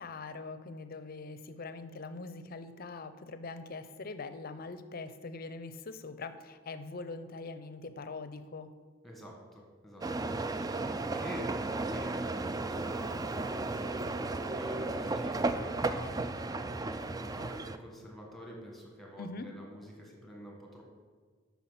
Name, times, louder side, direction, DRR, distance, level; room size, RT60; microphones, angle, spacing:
voice 1, 0.0-8.7 19.2-19.5, left 3 dB, 50° left, 11 dB, 0.6 m, -43 dB
voice 2, 9.0-14.0 14.5-20.8, equal, ahead, -1 dB, 1.6 m, -48 dB
sound 1, 10.0-17.8, right 2 dB, 20° right, 0.3 m, -34 dB
8.5 x 5.8 x 5.7 m, 1.5 s
head